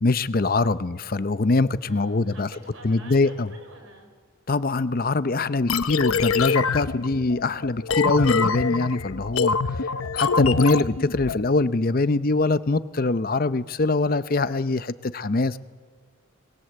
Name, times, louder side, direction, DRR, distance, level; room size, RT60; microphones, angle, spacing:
voice 1, 0.0-2.5 2.8-3.5 4.5-9.9 10.1-15.6, left 3 dB, 45° left, 14 dB, 0.7 m, -23 dB
voice 2, 1.8-4.1 9.8-10.1 15.5-15.6, right 2 dB, 75° right, 4 dB, 5.5 m, -48 dB
sound 1, 5.7-11.4, left 5 dB, 85° left, 0.7 m, -25 dB
26.0 x 20.0 x 7.7 m, 1.5 s
head